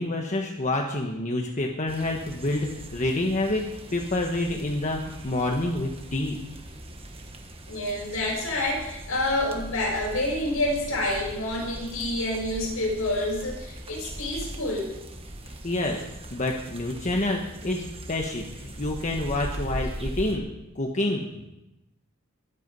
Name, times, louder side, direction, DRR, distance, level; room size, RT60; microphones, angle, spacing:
voice 1, 0.0-3.6 3.9-6.4 15.6-16.0 16.3-20.5 20.7-21.5, left 2 dB, 35° left, 1 dB, 1.3 m, -28 dB
sound 1, 1.9-20.4, right 1 dB, 25° right, 1.4 m, -40 dB
voice 2, 7.7-14.9, left 1 dB, 70° left, -3 dB, 7.1 m, -28 dB
21.5 x 8.5 x 5.5 m, 0.93 s
head